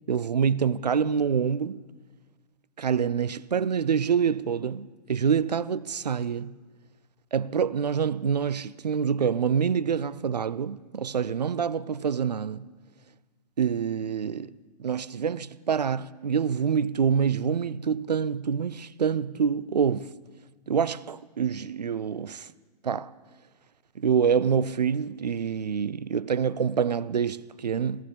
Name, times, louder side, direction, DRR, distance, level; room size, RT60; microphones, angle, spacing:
voice 1, 0.1-1.8 2.8-6.6 7.3-12.7 13.6-14.5 14.8-20.1 20.7-22.5 22.8-23.1 24.0-28.0, right 7 dB, 80° right, 0.5 m, -26 dB
21.5 x 15.0 x 3.4 m
figure-of-eight pair, 115°, 21 cm